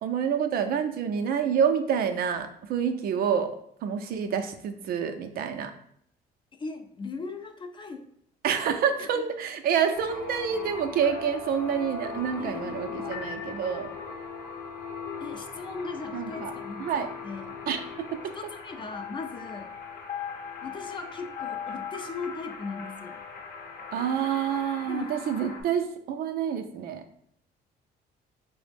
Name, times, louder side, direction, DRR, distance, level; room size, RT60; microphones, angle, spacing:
voice 1, 0.0-3.5 3.8-5.7 8.4-13.9 16.1-16.5 16.8-17.1 17.7-18.3 23.9-27.0, right 7 dB, 60° right, 7 dB, 0.4 m, -28 dB
voice 2, 6.6-8.1 9.0-9.2 12.4-13.2 15.2-17.6 18.3-19.7 20.6-23.2 24.8-25.2, left 4 dB, 30° left, 7 dB, 0.4 m, -38 dB
sound 1, 9.9-25.6, left 5 dB, 65° left, 0.7 m, -39 dB
3.9 x 2.0 x 3.3 m, 0.69 s
cardioid pair, 110°, 17 cm